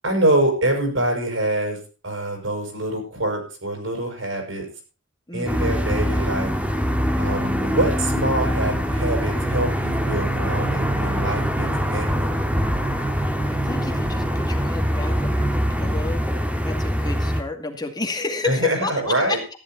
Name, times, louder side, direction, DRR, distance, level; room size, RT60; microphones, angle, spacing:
voice 1, 0.0-1.8 2.0-4.7 5.3-6.5 7.2-12.3 18.4-19.4, right 1 dB, 70° right, 3 dB, 6.3 m, -25 dB
voice 2, 5.3-5.8 13.6-16.2 16.6-19.4, left 3 dB, 20° left, 4 dB, 2.2 m, -30 dB
sound 1, 5.5-17.4, equal, 5° right, 1.7 m, -23 dB
14.0 x 11.5 x 4.3 m, 0.34 s
head